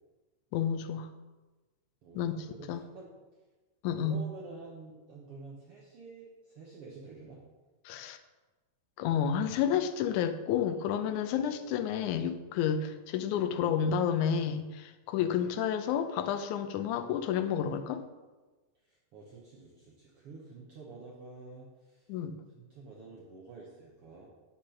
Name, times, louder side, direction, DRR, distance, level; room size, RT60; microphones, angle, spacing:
voice 1, 0.5-1.1 2.2-2.3 2.7-2.8 3.8-4.2 7.9-8.2 9.0-18.0 22.1-22.4, left 8 dB, 75° left, 9 dB, 1.9 m, -30 dB
voice 2, 2.0-3.1 4.0-7.4 15.2-15.4 18.8-22.1 22.5-24.3, right 3 dB, 60° right, -4 dB, 1.6 m, -49 dB
8.3 x 6.8 x 5.7 m, 1.2 s
omnidirectional pair, 4.0 m